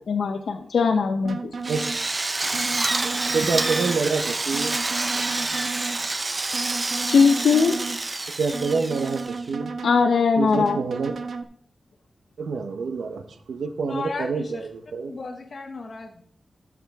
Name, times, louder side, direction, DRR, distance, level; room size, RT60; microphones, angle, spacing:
voice 1, 0.1-1.4 7.1-7.8 9.8-10.8, left 5 dB, 80° left, 5 dB, 0.7 m, -20 dB
sound 1, 1.2-2.0 2.5-4.0 4.5-6.0 6.5-8.0 8.5-10.0 10.5-11.4, right 4 dB, 60° right, 0.9 m, -33 dB
Drill, 1.6-9.5, right 2 dB, 25° right, 0.3 m, -28 dB
voice 2, 3.0-4.7 8.4-9.7 10.4-11.1 12.4-13.2 13.5-15.1, right 4 dB, 90° right, 9 dB, 0.7 m, -27 dB
voice 3, 13.8-14.7 15.0-16.2, left 3 dB, 40° left, 3 dB, 0.8 m, -35 dB
13.0 x 7.3 x 3.5 m, 0.62 s
wide cardioid pair, 175°, 0 cm